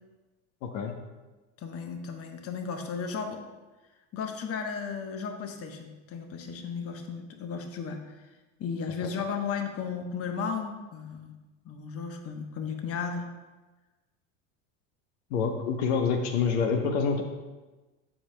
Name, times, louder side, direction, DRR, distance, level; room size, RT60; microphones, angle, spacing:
voice 1, 0.6-0.9 15.3-17.2, left 5 dB, 80° left, 4 dB, 0.9 m, -27 dB
voice 2, 1.6-3.4 4.1-8.3 8.6-11.4 11.6-13.3, left 6 dB, 40° left, 5 dB, 1.0 m, -35 dB
14.5 x 5.0 x 2.2 m, 1.2 s
supercardioid pair, 100°, 37 cm